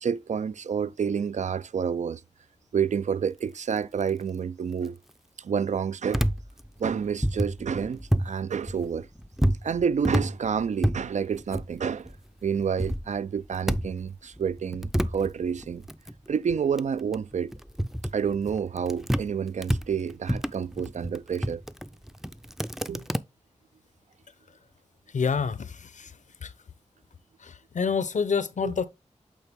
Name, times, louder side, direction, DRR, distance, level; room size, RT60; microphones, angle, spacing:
voice 1, 0.0-2.2 2.7-5.0 5.4-6.3 6.8-9.1 9.6-12.1 12.4-15.8 16.3-17.5 18.1-21.6 22.9-23.1 28.6-28.7, right 7 dB, 75° right, 0.4 m, -29 dB
sound 1, 6.1-8.4 8.7-12.2 12.5-14.1 14.3-19.3 19.6-23.2, equal, 5° right, 0.4 m, -29 dB
voice 2, 25.1-26.1 26.4-26.5 27.4-28.9, left 5 dB, 85° left, 0.7 m, -28 dB
8.3 x 3.8 x 3.5 m
wide cardioid pair, 85°, 12 cm